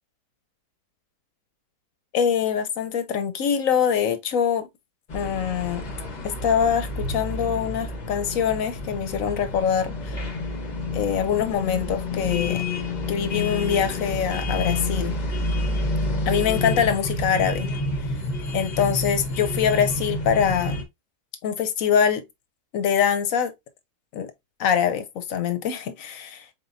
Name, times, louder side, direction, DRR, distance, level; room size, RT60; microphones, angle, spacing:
voice 1, 2.1-4.7 5.1-5.8 6.2-10.2 10.9-12.6 13.1-15.2 16.3-17.7 18.5-20.8 21.4-22.2 22.7-23.5 24.1-24.3 24.6-26.4, left 8 dB, 65° left, 1.0 m, -24 dB
sound 1, 5.1-20.8, left 2 dB, 40° left, 0.7 m, -29 dB
4.1 x 3.7 x 2.5 m
omnidirectional pair, 1.7 m